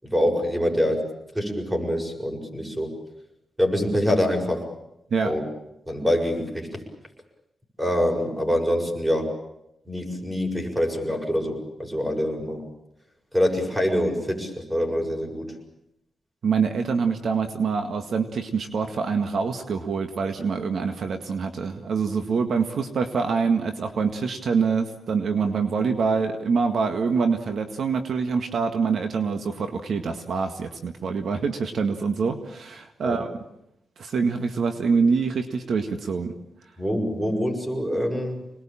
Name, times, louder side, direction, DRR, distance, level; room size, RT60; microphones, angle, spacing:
voice 1, 0.0-1.1 1.3-2.9 3.6-4.7 5.2-5.4 5.9-6.8 7.8-9.3 9.9-12.7 13.3-15.6 33.0-33.2 36.8-38.4, equal, 10° right, 2 dB, 7.1 m, -25 dB
voice 2, 16.4-33.3 34.0-36.3, right 5 dB, 75° right, 6 dB, 1.8 m, -25 dB
26.5 x 20.5 x 8.9 m, 0.83 s
wide cardioid pair, 105°, 0 cm